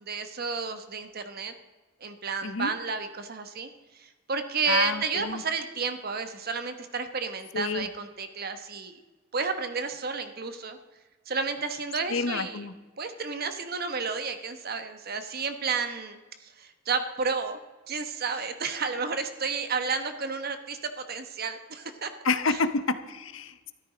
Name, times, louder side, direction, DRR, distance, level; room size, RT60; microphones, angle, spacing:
voice 1, 0.1-1.5 2.0-9.0 9.3-10.8 11.3-12.7 13.0-17.6 17.9-22.1 22.5-22.6, right 5 dB, 50° right, 8 dB, 1.2 m, -32 dB
voice 2, 4.7-5.4 7.5-7.9 12.1-12.7 22.2-23.7, left 4 dB, 80° left, 12 dB, 0.9 m, -28 dB
13.0 x 13.0 x 5.1 m, 1.2 s
head